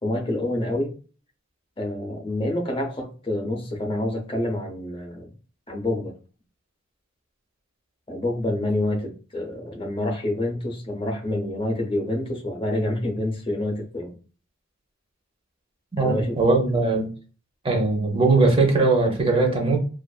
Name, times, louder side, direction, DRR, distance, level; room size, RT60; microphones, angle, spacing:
voice 1, 0.0-0.9 1.8-5.3 5.7-6.1 8.1-14.2 16.0-16.4, left 1 dB, 25° left, 0.7 m, -27 dB
voice 2, 15.9-17.1 17.6-19.8, right 3 dB, 25° right, 0.7 m, -20 dB
2.5 x 2.5 x 2.3 m
head